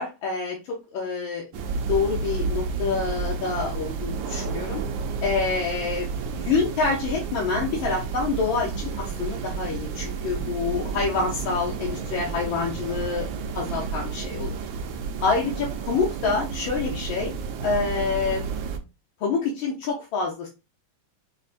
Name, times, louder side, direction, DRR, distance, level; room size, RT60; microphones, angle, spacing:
voice 1, 0.0-1.4 1.9-4.8 5.2-6.1 6.3-13.3 13.5-14.6 15.2-17.3 17.6-18.4 19.2-20.5, left 4 dB, 85° left, -2 dB, 1.6 m, -27 dB
sound 1, 1.5-18.8, right 5 dB, 80° right, 1.4 m, -31 dB
5.7 x 2.1 x 2.4 m, 0.27 s
omnidirectional pair, 2.1 m